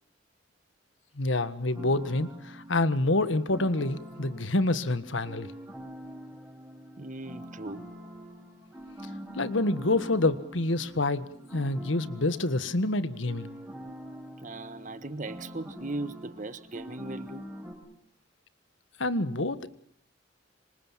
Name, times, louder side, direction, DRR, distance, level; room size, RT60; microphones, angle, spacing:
voice 1, 1.2-5.5 9.3-11.3 11.5-13.5 19.0-19.7, left 2 dB, 75° left, 1.6 m, -27 dB
sound 1, 1.7-17.7, equal, 10° right, 5.9 m, -45 dB
voice 2, 7.0-7.9 14.4-17.5, right 2 dB, 40° right, 1.4 m, -38 dB
26.0 x 25.5 x 7.4 m
head